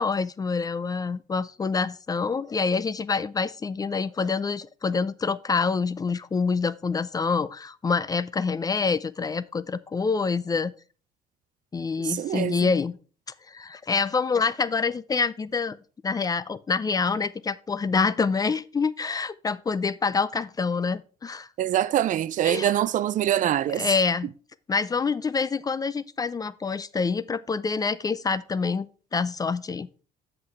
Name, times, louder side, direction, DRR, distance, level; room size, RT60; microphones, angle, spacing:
voice 1, 0.0-10.7 11.7-12.9 13.5-15.8 16.0-21.5 22.4-22.7 23.7-24.3 24.7-29.9, left 5 dB, 20° left, 0.4 m, -26 dB
voice 2, 12.0-12.7 21.6-23.9, right 12 dB, 50° right, 0.4 m, -24 dB
7.6 x 5.8 x 4.6 m
cardioid pair, 110°, 17 cm